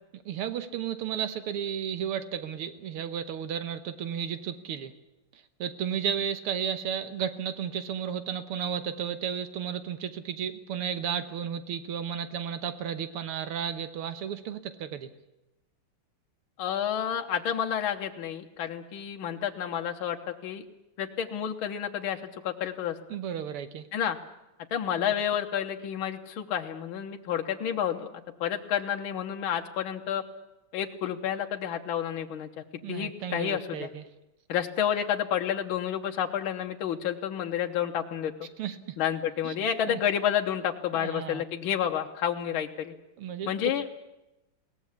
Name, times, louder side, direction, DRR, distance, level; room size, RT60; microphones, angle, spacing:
voice 1, 0.1-4.9 5.3-15.1 23.1-23.9 25.0-25.1 32.8-34.0 38.6-39.0 39.4-39.6 39.9-40.0 40.9-41.4 43.2-43.5, right 8 dB, 80° right, 11 dB, 2.0 m, -33 dB
voice 2, 16.6-20.6 21.0-23.0 23.9-24.2 24.7-28.1 28.4-30.2 30.7-32.5 32.9-33.9 34.5-38.3 39.0-42.9 43.5-43.9, left 9 dB, 70° left, 4 dB, 1.9 m, -30 dB
21.5 x 18.5 x 8.4 m, 0.95 s
omnidirectional pair, 2.4 m